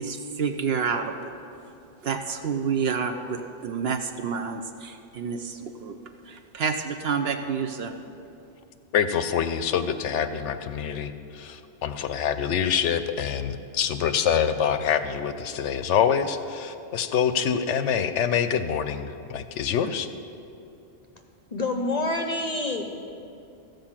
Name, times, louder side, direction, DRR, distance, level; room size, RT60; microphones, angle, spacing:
voice 1, 0.0-1.3 2.0-6.0 6.3-7.9, right 6 dB, 60° right, 6 dB, 0.7 m, -29 dB
voice 2, 8.9-20.1, left 8 dB, 70° left, 10 dB, 0.8 m, -25 dB
voice 3, 21.5-22.8, left 2 dB, 45° left, 4 dB, 0.6 m, -27 dB
14.5 x 5.3 x 7.3 m, 2.6 s
omnidirectional pair, 1.3 m